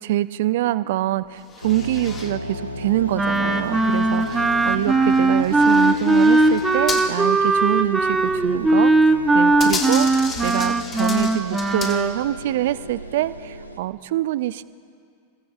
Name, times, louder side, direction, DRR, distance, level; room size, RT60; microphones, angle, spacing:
voice 1, 0.0-14.6, right 14 dB, 55° right, 16 dB, 0.4 m, -25 dB
sound 1, 1.4-2.3 2.9-7.1 7.4-7.5 8.3-8.7 9.2-12.3 12.9-13.1, left 4 dB, 25° left, 1.7 m, -34 dB
sound 2, 1.6-13.8, equal, 90° left, 0.8 m, -35 dB
Wind instrument woodwind instrument, 3.1-12.2, right 2 dB, 10° right, 0.7 m, -19 dB
28.0 x 16.0 x 2.4 m, 2.2 s
figure-of-eight pair, 90°, 0 cm